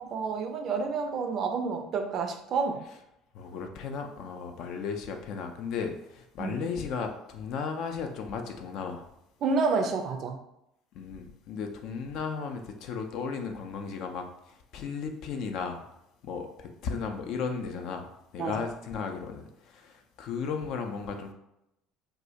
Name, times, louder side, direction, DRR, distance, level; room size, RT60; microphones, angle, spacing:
voice 1, 0.0-2.8 6.4-6.6 9.4-10.4 18.4-18.6, right 4 dB, 50° right, 5 dB, 0.4 m, -29 dB
voice 2, 3.3-9.1 10.9-15.8 16.2-18.1 18.3-21.3, left 5 dB, 60° left, 5 dB, 0.3 m, -35 dB
2.3 x 2.0 x 2.7 m, 0.82 s
hypercardioid pair, 60°, 0 cm